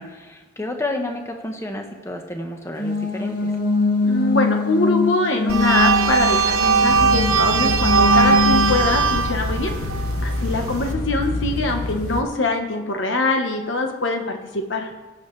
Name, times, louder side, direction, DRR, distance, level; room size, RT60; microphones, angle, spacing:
voice 1, 0.0-3.5, left 1 dB, 15° left, 3 dB, 1.1 m, -30 dB
sound 1, 2.7-8.7, left 3 dB, 40° left, 2.0 m, -23 dB
voice 2, 4.0-9.7 10.2-14.9, left 2 dB, 55° left, 4 dB, 1.3 m, -23 dB
sound 2, 5.5-10.9, right 5 dB, 80° right, 1.1 m, -20 dB
sound 3, 6.9-12.2, left 2 dB, 90° left, 1.2 m, -27 dB
17.0 x 8.4 x 3.3 m, 1.2 s
head